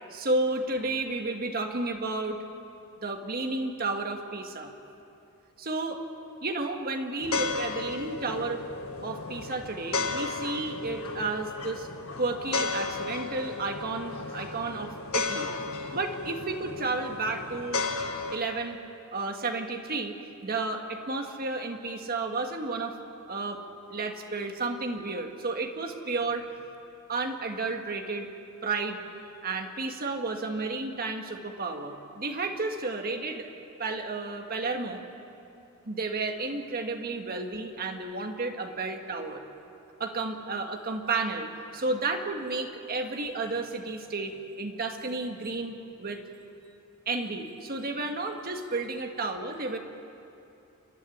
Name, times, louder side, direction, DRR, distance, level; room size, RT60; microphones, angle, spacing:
voice 1, 0.1-2.4 3.0-4.7 5.6-6.0 6.4-8.6 9.0-11.9 12.2-15.5 15.9-17.8 18.3-18.8 19.1-20.2 20.4-23.0 23.3-23.6 23.9-26.4 27.1-28.3 28.6-29.0 29.4-33.5 33.8-35.0 35.8-39.4 40.0-46.2 47.0-49.8, right 3 dB, 45° right, 4 dB, 1.7 m, -32 dB
sound 1, 7.2-18.4, left 3 dB, 75° left, 1.6 m, -34 dB
29.0 x 11.5 x 10.0 m, 2.7 s
head